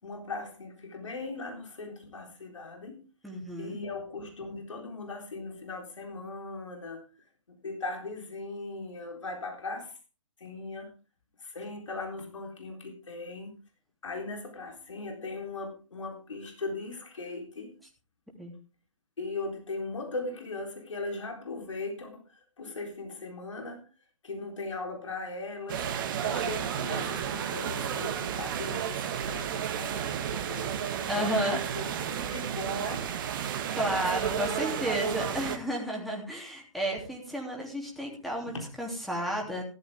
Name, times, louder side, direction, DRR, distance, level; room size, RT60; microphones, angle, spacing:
voice 1, 0.0-3.0 3.6-7.0 7.5-9.9 10.4-10.9 11.4-13.5 14.0-17.7 19.2-22.2 22.6-23.8 24.2-25.9 26.2-30.7 31.2-31.8 32.1-33.1 38.5-38.6, left 3 dB, 65° left, 2 dB, 3.8 m, -38 dB
voice 2, 3.2-3.8 18.4-18.5 31.1-31.6 33.7-39.6, equal, ahead, -2 dB, 3.1 m, -32 dB
sound 1, 25.7-35.6, right 8 dB, 40° right, 1.6 m, -32 dB
14.5 x 12.0 x 3.6 m, 0.34 s
figure-of-eight pair, 130°, 17 cm